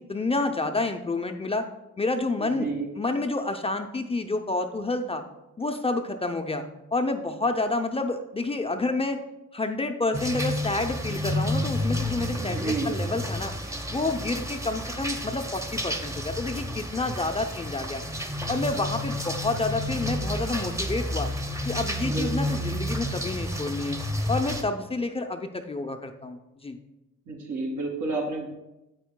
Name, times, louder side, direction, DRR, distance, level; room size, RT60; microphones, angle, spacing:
voice 1, 0.1-1.7 2.0-2.7 3.0-5.2 5.6-6.6 6.9-9.2 9.5-13.5 13.9-18.0 18.5-21.3 21.6-24.0 24.3-26.8, left 3 dB, 20° left, 5 dB, 0.5 m, -29 dB
voice 2, 2.4-2.9 12.4-12.9 22.0-22.3 27.3-28.5, right 3 dB, 70° right, -1 dB, 2.4 m, -30 dB
sound 1, 10.1-24.6, equal, 10° right, 0.8 m, -30 dB
9.2 x 8.0 x 2.2 m, 0.95 s
cardioid pair, 90°, 30 cm